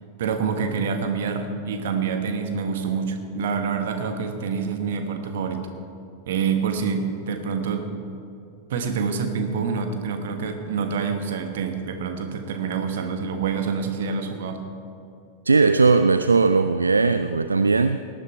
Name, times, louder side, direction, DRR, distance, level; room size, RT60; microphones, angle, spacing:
voice 1, 0.2-5.7 6.3-7.9 8.7-14.6, right 5 dB, 55° right, 6 dB, 1.3 m, -27 dB
voice 2, 15.5-18.0, right 4 dB, 80° right, 11 dB, 0.3 m, -18 dB
18.5 x 10.0 x 4.6 m, 2.5 s
figure-of-eight pair, 90°, 0 cm